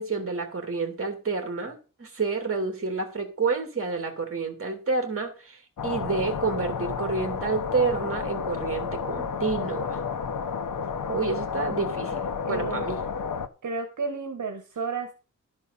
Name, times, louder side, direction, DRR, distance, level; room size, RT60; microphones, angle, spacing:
voice 1, 0.0-10.0 11.1-13.0, right 4 dB, 45° right, 5 dB, 3.0 m, -29 dB
sound 1, 5.8-13.5, left 6 dB, 90° left, 1.0 m, -31 dB
voice 2, 12.4-12.9 13.6-15.1, right 4 dB, 65° right, 5 dB, 1.7 m, -32 dB
12.5 x 5.3 x 6.9 m, 0.33 s
wide cardioid pair, 160°, 31 cm